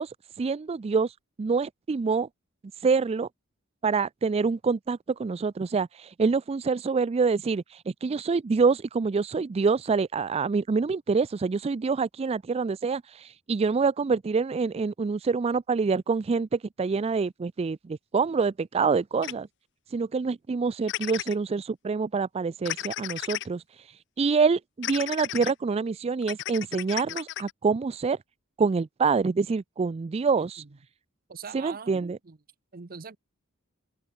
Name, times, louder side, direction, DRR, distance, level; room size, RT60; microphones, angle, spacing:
voice 1, 0.0-2.3 2.8-3.3 3.8-19.5 19.9-28.2 28.6-30.6 31.5-32.2, right 4 dB, 30° right, 0.3 m, -26 dB
sound 1, 19.2-19.3 20.9-21.3 22.7-23.5 24.8-25.5 26.2-27.5, left 14 dB, 55° left, 0.5 m, -34 dB
voice 2, 30.3-30.8 31.3-32.4 32.7-33.2, right 5 dB, 45° right, 0.8 m, -42 dB
open air
head